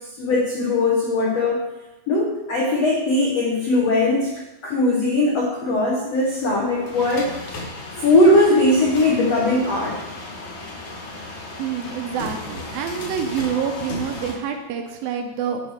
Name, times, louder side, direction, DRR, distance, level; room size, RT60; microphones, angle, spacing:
voice 1, 0.2-1.7 2.1-4.3 4.6-7.3 7.9-10.0, left 2 dB, 70° left, -3 dB, 1.5 m, -19 dB
sound 1, 6.1-14.3, left 2 dB, 55° left, 2.4 m, -35 dB
voice 2, 11.6-15.6, right 7 dB, 75° right, 5 dB, 2.2 m, -27 dB
10.5 x 4.8 x 6.3 m, 0.97 s
omnidirectional pair, 4.8 m